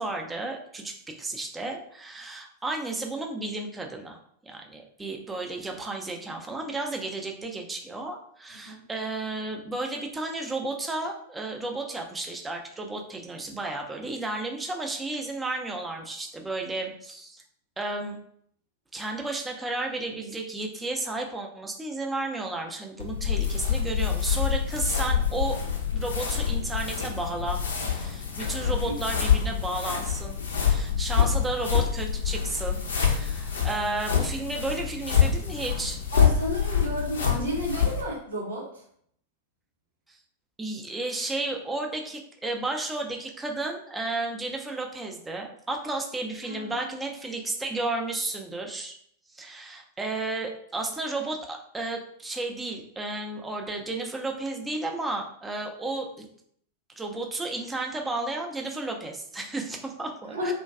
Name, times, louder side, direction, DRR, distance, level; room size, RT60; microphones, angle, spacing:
voice 1, 0.0-17.4 17.8-18.2 18.9-25.6 25.9-27.6 27.9-36.0 40.1-40.2 40.6-49.0 49.3-56.3 57.0-60.5, right 2 dB, 10° right, 2 dB, 0.4 m, -33 dB
sound 1, 23.0-38.0, left 8 dB, 65° left, 0.4 m, -26 dB
voice 2, 36.1-38.8 46.4-46.8 47.1-47.4 60.3-60.5, equal, 70° right, -2 dB, 0.7 m, -32 dB
2.5 x 2.2 x 2.3 m, 0.67 s
figure-of-eight pair, 90°, 0 cm